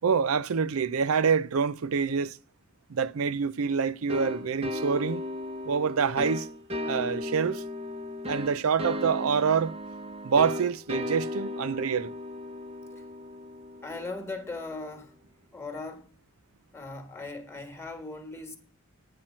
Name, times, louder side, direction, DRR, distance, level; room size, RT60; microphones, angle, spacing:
voice 1, 0.0-2.4 2.9-5.2 5.6-6.5 6.8-7.6 8.3-9.7 10.2-12.1, right 6 dB, 85° right, 0.5 m, -26 dB
sound 1, 4.1-14.6, left 2 dB, 30° right, 0.9 m, -36 dB
voice 2, 13.7-15.2 15.5-16.1 16.7-18.6, left 3 dB, 10° left, 1.4 m, -39 dB
9.5 x 4.4 x 7.4 m
head